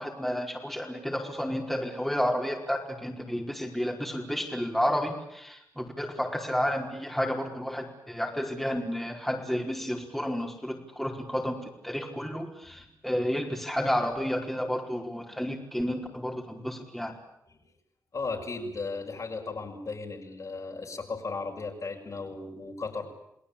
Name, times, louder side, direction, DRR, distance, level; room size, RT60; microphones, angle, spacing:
voice 1, 0.0-17.2, equal, ahead, 0 dB, 5.0 m, -31 dB
voice 2, 18.1-23.0, left 3 dB, 50° left, 2 dB, 6.2 m, -36 dB
29.5 x 18.5 x 8.9 m, 0.82 s
cardioid pair, 70°, 7 cm